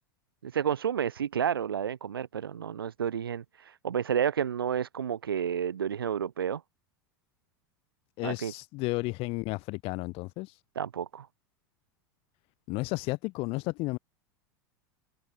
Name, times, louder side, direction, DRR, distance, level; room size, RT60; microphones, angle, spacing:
voice 1, 0.4-6.6 8.2-8.5 10.7-11.3, right 8 dB, 85° right, 6.9 m, -30 dB
voice 2, 8.2-10.6 12.7-14.0, left 24 dB, 55° left, 3.4 m, -33 dB
open air
hypercardioid pair, 90°, 12 cm